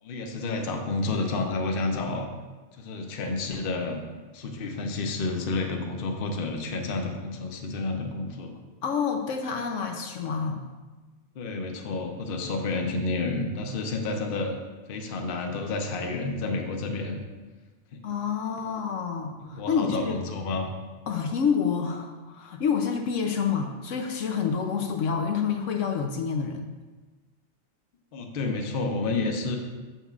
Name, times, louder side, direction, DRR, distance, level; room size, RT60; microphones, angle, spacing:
voice 1, 0.0-2.3 2.8-4.0 4.3-8.6 11.3-14.6 14.9-17.2 17.9-18.0 19.4-20.7 28.1-29.6, left 3 dB, 50° left, 3 dB, 0.8 m, -30 dB
voice 2, 8.8-10.6 18.0-20.2 21.1-26.7, left 6 dB, 75° left, 3 dB, 0.9 m, -28 dB
7.2 x 6.9 x 2.4 m, 1.3 s
omnidirectional pair, 1.4 m